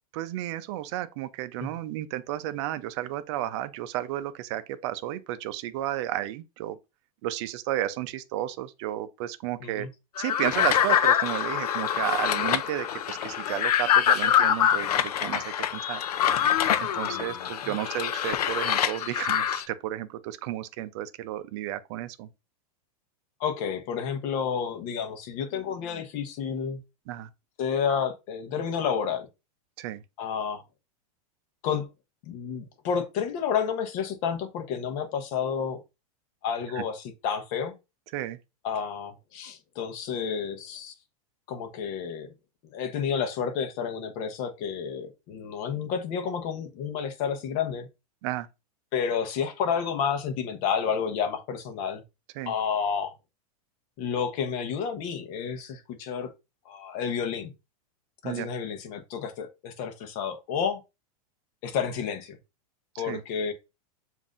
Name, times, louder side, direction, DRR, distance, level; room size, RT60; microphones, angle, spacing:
voice 1, 0.1-6.8 7.2-9.9 10.2-16.0 16.8-22.3 27.1-27.3 29.8-30.0 36.7-36.8 38.1-38.4 48.2-48.5 52.4-52.5 58.2-58.5 63.0-63.2, right 14 dB, 50° right, 0.5 m, -32 dB
sound 1, 10.2-19.6, left 10 dB, 85° left, 0.5 m, -25 dB
voice 2, 17.0-17.5 23.4-26.8 27.6-29.3 30.2-30.6 31.6-31.9 32.3-35.8 36.4-37.7 38.6-40.9 41.5-42.3 42.7-47.9 48.9-52.0 52.4-53.1 54.0-56.3 56.7-57.5 58.2-60.8 61.6-62.4 63.0-63.5, left 7 dB, 45° left, 0.9 m, -30 dB
7.0 x 2.6 x 2.5 m
hypercardioid pair, 135°, 19 cm